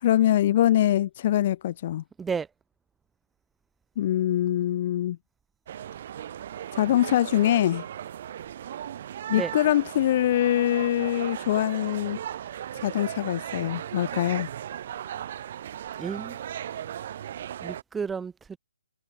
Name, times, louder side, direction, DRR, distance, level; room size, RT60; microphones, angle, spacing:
voice 1, 0.0-2.0 4.0-5.2 6.7-7.8 9.3-12.2 12.8-14.5, left 12 dB, 40° left, 2.5 m, -23 dB
sound 1, 5.7-17.8, right 10 dB, 45° right, 4.4 m, -37 dB
voice 2, 16.0-16.4 17.6-18.6, right 6 dB, 10° right, 5.5 m, -32 dB
figure-of-eight pair, 145°, 0 cm